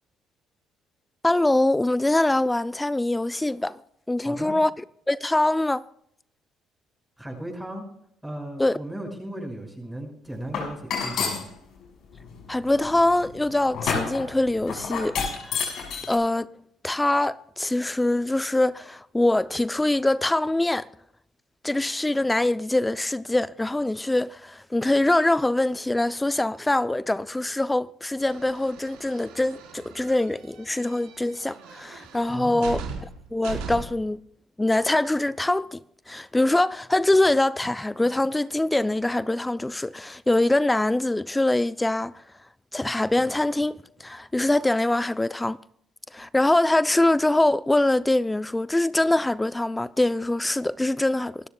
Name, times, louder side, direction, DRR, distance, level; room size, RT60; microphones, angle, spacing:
voice 1, 1.2-3.8 4.1-4.7 5.1-5.8 8.6-8.8 12.5-15.2 15.5-15.6 16.1-16.5 16.8-20.9 21.6-34.2 34.6-42.2 42.7-45.6 46.1-51.5, left 2 dB, 15° left, 0.5 m, -23 dB
voice 2, 4.2-4.5 7.2-7.8 8.2-11.5 32.3-32.7, right 1 dB, 5° right, 6.0 m, -36 dB
sound 1, 10.5-11.5 12.2-16.2, left 6 dB, 65° left, 6.1 m, -29 dB
sound 2, 28.2-34.1, right 5 dB, 85° right, 4.2 m, -39 dB
27.0 x 13.5 x 2.3 m
supercardioid pair, 65°, 0 cm